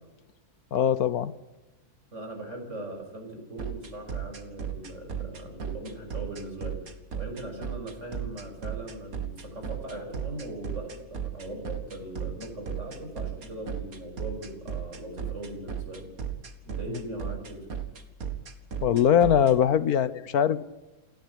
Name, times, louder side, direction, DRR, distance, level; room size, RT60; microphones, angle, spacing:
voice 1, 0.7-1.3 18.8-20.6, left 9 dB, 75° left, 15 dB, 1.4 m, -22 dB
voice 2, 2.1-6.8 7.1-16.1 16.6-17.6, right 1 dB, 50° right, 3 dB, 6.9 m, -39 dB
sound 1, 3.6-19.5, right 8 dB, 65° right, 2.3 m, -34 dB
28.5 x 12.0 x 9.9 m, 1.1 s
omnidirectional pair, 1.6 m